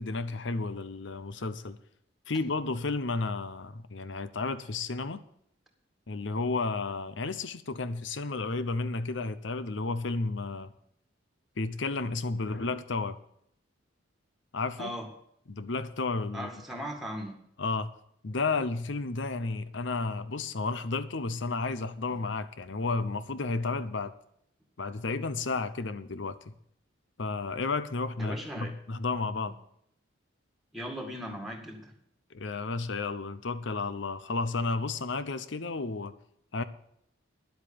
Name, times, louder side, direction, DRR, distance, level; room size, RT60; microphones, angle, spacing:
voice 1, 0.0-1.8 2.3-5.2 6.1-10.7 11.6-13.1 14.5-14.9 15.5-16.5 17.6-17.9 18.2-24.1 24.8-26.5 27.2-29.6 32.3-36.1 36.5-36.6, left 3 dB, 70° left, 0.8 m, -32 dB
voice 2, 16.3-17.4 28.2-28.7 30.7-31.9, equal, ahead, 2.1 m, -38 dB
10.5 x 8.1 x 8.8 m
head